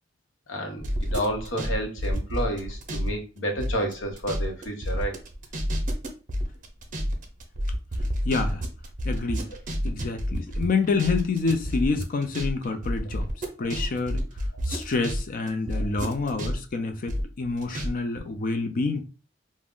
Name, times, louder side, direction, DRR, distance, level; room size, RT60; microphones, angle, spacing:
voice 1, 0.5-5.2 13.6-13.7 14.5-14.6 15.7-15.9, equal, 85° left, 0.8 m, -30 dB
sound 1, 0.8-3.1 3.4-15.2 15.5-17.9 18.2-18.3, equal, 45° right, 0.6 m, -29 dB
voice 2, 8.2-8.6 9.0-9.5 9.8-14.3 14.6-19.0, left 4 dB, 45° left, 0.4 m, -28 dB
2.4 x 2.1 x 3.5 m
head